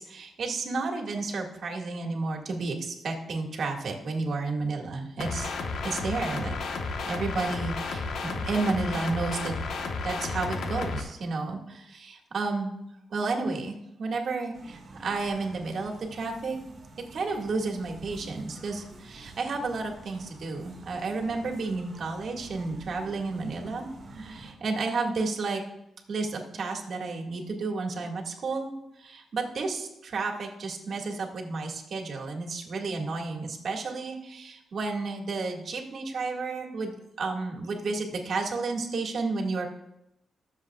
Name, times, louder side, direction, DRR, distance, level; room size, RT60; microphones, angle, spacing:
voice 1, 0.0-5.5 5.8-6.5 7.1-9.5 10.0-12.8 13.1-16.6 17.1-25.6 26.1-28.7 29.0-39.7, right 3 dB, 65° right, 1 dB, 1.9 m, -32 dB
sound 1, 5.2-11.0, left 4 dB, 80° left, 1.2 m, -32 dB
sound 2, 14.5-24.5, right 3 dB, 45° right, 1.9 m, -48 dB
21.5 x 7.4 x 2.4 m, 0.86 s
cardioid pair, 90°, 0 cm